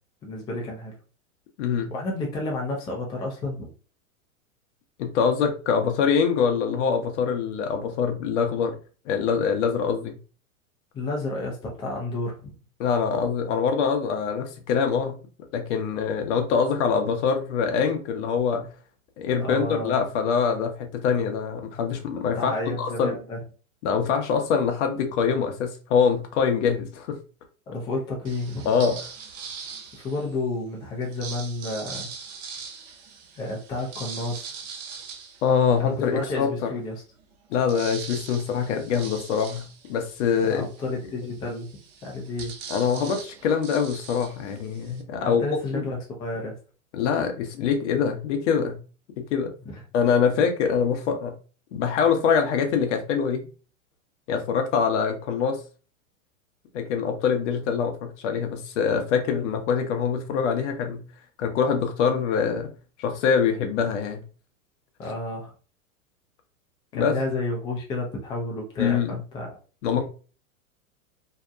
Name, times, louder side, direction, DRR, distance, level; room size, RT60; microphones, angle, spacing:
voice 1, 0.2-0.9 1.9-3.7 10.9-12.5 19.4-19.9 22.4-23.4 27.7-28.7 30.0-32.1 33.4-34.6 35.8-37.0 40.4-41.7 42.0-42.5 45.2-46.5 49.7-49.8 65.0-65.5 66.9-69.5, left 2 dB, 10° left, -1 dB, 0.4 m, -31 dB
voice 2, 1.6-1.9 5.0-8.7 9.1-10.2 12.8-15.2 15.5-18.6 19.2-22.5 22.8-23.2 23.8-27.2 28.6-29.0 35.4-36.7 37.5-40.7 42.7-45.4 45.7-45.8 46.9-48.8 49.2-49.5 49.9-51.3 51.7-53.5 54.3-55.6 56.7-61.0 61.4-62.7 63.0-64.2 66.9-67.1 68.8-69.2 69.8-70.0, left 6 dB, 55° left, 5 dB, 0.7 m, -24 dB
sound 1, 28.2-30.4 31.0-36.2 36.7-36.8 37.0-45.0, right 6 dB, 45° right, 0.5 m, -41 dB
2.7 x 2.1 x 2.4 m, 0.36 s
hypercardioid pair, 115°, 42 cm